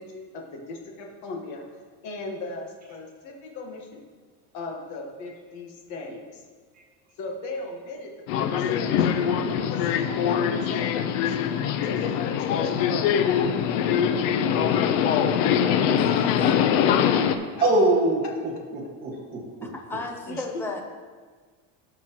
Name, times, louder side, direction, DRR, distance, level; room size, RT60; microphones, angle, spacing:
voice 1, 0.0-1.6 2.0-4.0 4.5-6.4 7.2-8.9 9.4-11.4 11.8-13.0 16.0-16.7 17.6-17.7 20.3-20.6, left 3 dB, 50° left, 1 dB, 1.5 m, -38 dB
Subway metro underground, 8.3-17.3, left 8 dB, 85° left, 0.7 m, -23 dB
voice 2, 15.9-16.4 19.6-20.8, left 2 dB, 5° left, 2 dB, 0.5 m, -34 dB
voice 3, 17.5-19.7, right 2 dB, 25° right, -3 dB, 1.7 m, -24 dB
16.0 x 5.7 x 3.0 m, 1.5 s
cardioid pair, 180°, 37 cm